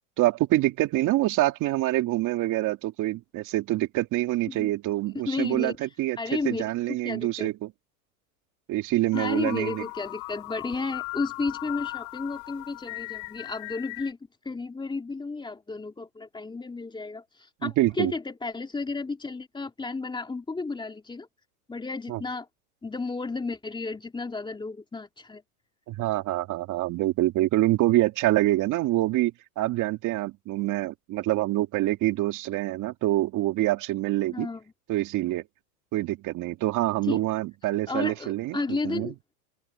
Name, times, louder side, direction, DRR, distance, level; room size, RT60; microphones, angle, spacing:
voice 1, 0.2-6.2 6.4-7.7 8.7-9.8 17.6-18.1 22.1-22.2 25.9-34.5 34.9-35.4 35.9-38.6 38.8-39.1, right 16 dB, 40° right, 2.5 m, -26 dB
voice 2, 5.3-5.8 6.2-7.5 9.1-14.2 14.4-21.3 21.7-22.5 22.8-25.4 34.3-34.6 37.1-37.2 37.9-39.1, left 3 dB, 10° left, 2.7 m, -33 dB
sound 1, 9.1-14.1, left 27 dB, 50° left, 3.1 m, -38 dB
open air
hypercardioid pair, 120°, 46 cm